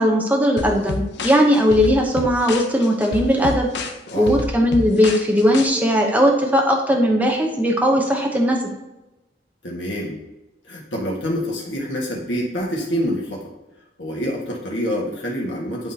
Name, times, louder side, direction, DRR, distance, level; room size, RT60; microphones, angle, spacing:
voice 1, 0.0-3.7 4.2-8.6, equal, 10° right, 1 dB, 0.7 m, -18 dB
sound 1, 0.6-5.7, left 3 dB, 65° left, 0.6 m, -29 dB
voice 2, 9.6-10.2 10.6-13.4 14.0-15.9, equal, 85° left, -3 dB, 1.5 m, -26 dB
10.5 x 3.6 x 2.8 m, 1.0 s
head